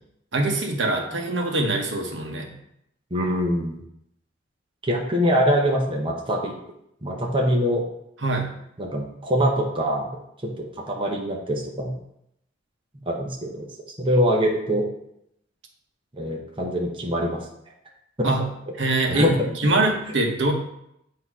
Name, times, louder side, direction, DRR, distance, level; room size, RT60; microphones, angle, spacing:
voice 1, 0.3-2.5 8.2-8.5 18.2-18.5 18.8-20.5, right 2 dB, 70° right, 2 dB, 1.0 m, -23 dB
voice 2, 3.1-3.8 4.8-6.5 7.0-7.8 8.8-10.2 10.4-11.9 13.1-13.7 14.0-14.9 16.1-17.4 18.2-18.3 19.1-19.3 19.6-19.8, equal, 25° right, -1 dB, 0.8 m, -23 dB
7.9 x 2.8 x 4.8 m, 0.78 s
head